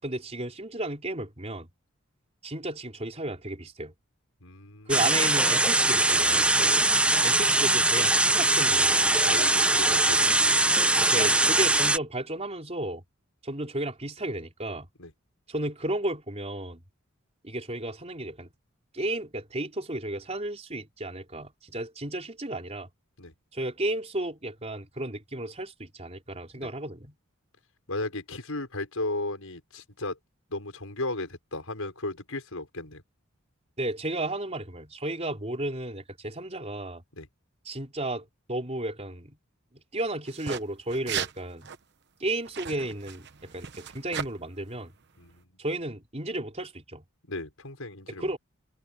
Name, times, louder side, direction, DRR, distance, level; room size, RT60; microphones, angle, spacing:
voice 1, 0.0-1.7 2.4-3.9 4.9-6.6 7.2-9.0 11.1-13.0 13.4-14.9 15.5-16.8 17.4-18.5 18.9-22.9 23.5-27.1 33.8-37.0 37.7-39.4 39.9-41.7 42.2-43.3 43.5-44.9 45.6-47.0 48.2-48.4, right 1 dB, 30° right, 4.1 m, -33 dB
voice 2, 4.4-5.1 6.6-6.8 9.2-10.6 11.0-11.1 15.0-15.1 23.2-23.3 26.6-26.7 27.9-30.2 30.5-33.0 37.1-37.3 45.2-45.4 47.2-48.4, left 2 dB, 80° left, 5.8 m, -35 dB
sound 1, 4.9-12.0, right 2 dB, 5° right, 0.7 m, -22 dB
sound 2, 40.3-40.6 40.9-41.3 41.6-41.8 42.5-44.3, right 8 dB, 55° right, 1.0 m, -35 dB
head